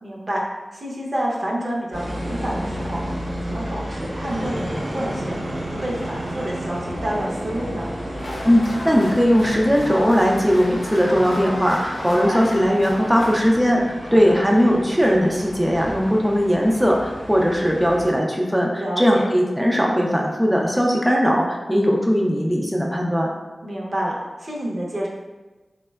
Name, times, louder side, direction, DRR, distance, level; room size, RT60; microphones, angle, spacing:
voice 1, 0.0-0.4 0.7-3.0 3.5-5.4 5.7-7.9 12.0-12.4 14.0-14.4 18.7-19.3 23.6-25.1, right 1 dB, 55° right, -3 dB, 0.6 m, -28 dB
sound 1, 1.9-18.1, equal, 90° right, 0.8 m, -32 dB
sound 2, 8.2-13.5, left 1 dB, 85° left, 0.5 m, -35 dB
voice 2, 8.4-23.3, equal, 5° right, -1 dB, 0.3 m, -19 dB
3.5 x 2.1 x 2.2 m, 1.2 s
cardioid pair, 50°, 0 cm